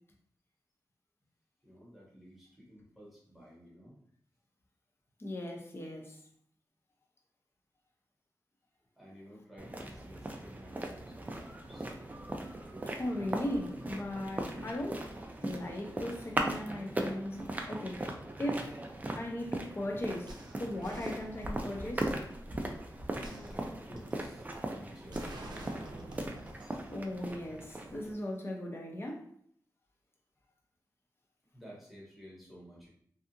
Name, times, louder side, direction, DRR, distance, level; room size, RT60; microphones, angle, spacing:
voice 1, 1.6-4.0 9.0-11.9 23.1-25.9 31.5-32.9, equal, ahead, -6 dB, 0.9 m, -53 dB
voice 2, 5.2-6.2 12.9-15.1 15.4-18.1 18.4-18.8 19.1-20.3 20.6-22.1 26.9-29.3, left 1 dB, 35° left, 1 dB, 0.6 m, -38 dB
sound 1, 9.6-28.1, right 1 dB, 25° right, 0.3 m, -39 dB
sound 2, 20.3-21.8 23.2-24.2 25.1-26.9 27.3-27.4, right 1 dB, 85° right, 0.5 m, -48 dB
2.7 x 2.3 x 2.5 m, 0.64 s
wide cardioid pair, 115°, 7 cm